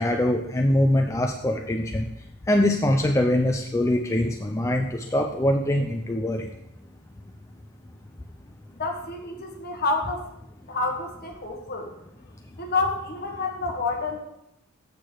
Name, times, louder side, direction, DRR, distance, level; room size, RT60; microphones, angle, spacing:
voice 1, 0.0-2.1 2.5-6.4, left 1 dB, 15° left, 2 dB, 0.4 m, -23 dB
voice 2, 8.8-10.3 10.7-11.9 12.6-14.2, left 3 dB, 50° left, 2 dB, 1.4 m, -28 dB
8.1 x 6.5 x 4.6 m, 0.83 s
head